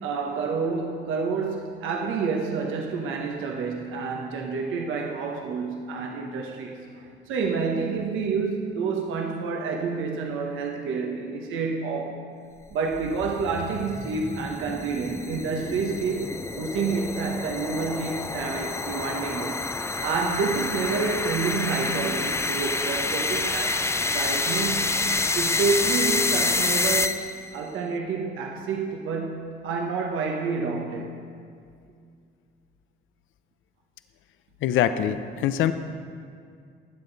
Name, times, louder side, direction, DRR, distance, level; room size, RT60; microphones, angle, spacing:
voice 1, 0.0-12.2 12.7-16.3 16.6-19.7 20.0-23.8 24.1-25.1 25.3-31.1, right 4 dB, 85° right, 1 dB, 1.1 m, -29 dB
sound 1, 12.7-27.5, left 3 dB, 15° left, 0.4 m, -28 dB
voice 2, 34.6-35.7, left 10 dB, 85° left, 11 dB, 0.6 m, -23 dB
21.0 x 7.9 x 4.0 m, 2.3 s
cardioid pair, 90°, 20 cm